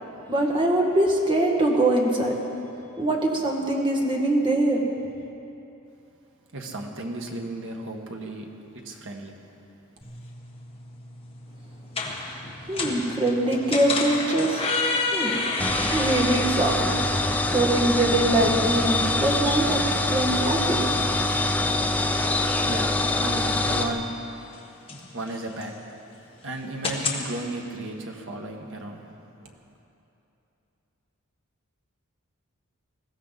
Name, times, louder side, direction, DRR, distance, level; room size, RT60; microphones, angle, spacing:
voice 1, 0.3-2.4 3.0-4.8 12.7-14.6 15.1-15.4 15.9-16.7 17.5-19.8 20.1-20.8, right 1 dB, 25° right, -1 dB, 1.9 m, -23 dB
voice 2, 6.5-8.5 8.8-9.3 22.6-24.1 25.1-25.7 26.4-29.0 29.4-29.6, right 2 dB, 65° right, 2 dB, 1.6 m, -34 dB
sound 1, 10.0-27.2, left 3 dB, 25° left, 1.5 m, -33 dB
sound 2, 15.6-23.9, left 2 dB, 10° left, 0.7 m, -24 dB
20.5 x 15.0 x 4.1 m, 2.8 s
head